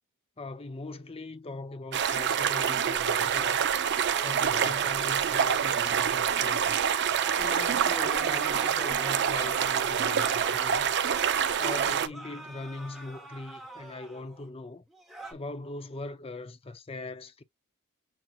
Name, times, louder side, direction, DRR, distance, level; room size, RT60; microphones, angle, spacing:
voice 1, 0.4-3.7 4.2-6.8 7.4-10.9 11.6-14.8 15.3-17.4, left 2 dB, 25° left, 0.5 m, -40 dB
sound 1, 1.9-12.1, right 8 dB, 50° right, 0.5 m, -26 dB
sound 2, 3.4-6.1 6.6-14.5 14.9-15.3, right 2 dB, ahead, 1.1 m, -44 dB
7.3 x 2.8 x 2.4 m
head